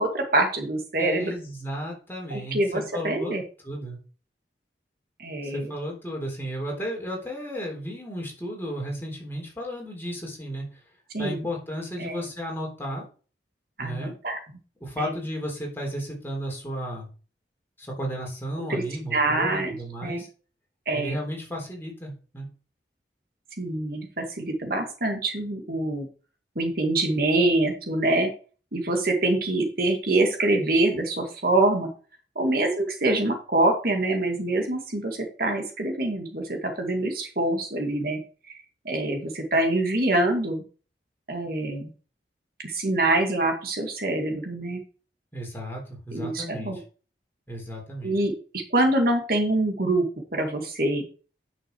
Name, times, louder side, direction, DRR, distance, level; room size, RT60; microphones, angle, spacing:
voice 1, 0.0-1.3 2.3-3.4 5.2-5.7 11.1-11.4 12.0-12.2 13.8-14.4 15.0-15.1 18.7-18.8 19.1-19.7 20.0-20.2 20.9-21.2 23.6-26.1 26.6-28.3 28.7-31.9 32.4-38.2 38.9-40.6 41.3-41.9 42.6-44.8 46.1-46.8 48.0-48.3 48.7-50.0 50.3-51.0, right 2 dB, 55° right, 3 dB, 2.1 m, -25 dB
voice 2, 1.0-3.3 3.6-4.0 5.4-10.8 11.2-13.1 13.8-14.1 14.8-17.1 17.8-20.3 20.9-22.5 45.3-46.8 47.5-48.2, equal, 15° left, -1 dB, 3.7 m, -34 dB
10.0 x 6.3 x 4.7 m, 0.38 s
head